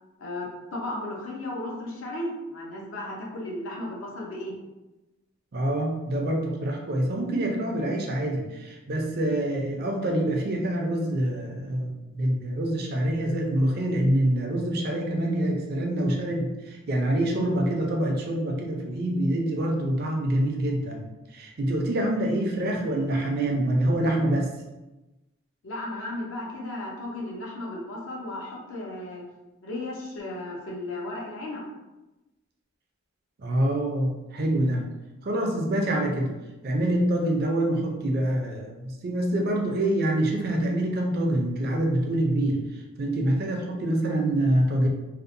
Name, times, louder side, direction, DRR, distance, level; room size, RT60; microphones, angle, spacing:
voice 1, 0.2-4.5 25.6-29.2 29.6-31.6, left 1 dB, 70° left, -3 dB, 0.6 m, -35 dB
voice 2, 5.5-24.5 33.4-34.9 35.2-36.3 36.6-44.9, right 1 dB, 45° right, 1 dB, 0.4 m, -26 dB
2.7 x 2.0 x 2.5 m, 1.0 s
head